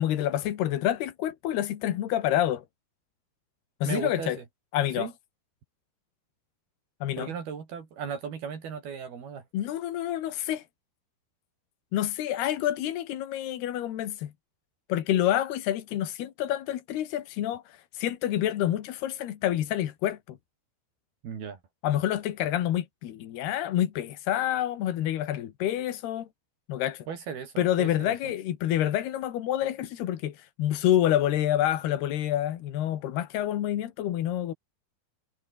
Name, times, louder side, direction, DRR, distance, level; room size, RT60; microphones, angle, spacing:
voice 1, 0.0-2.7 3.8-4.4 4.7-5.1 7.0-7.3 9.5-10.6 11.9-14.3 14.9-20.4 21.8-26.3 26.7-27.1 27.6-34.5, left 12 dB, 85° left, 3.8 m, -28 dB
voice 2, 3.9-4.3 5.0-5.1 7.2-9.4 21.2-21.6 27.1-28.1, right 7 dB, 75° right, 5.5 m, -36 dB
omnidirectional pair, 4.5 m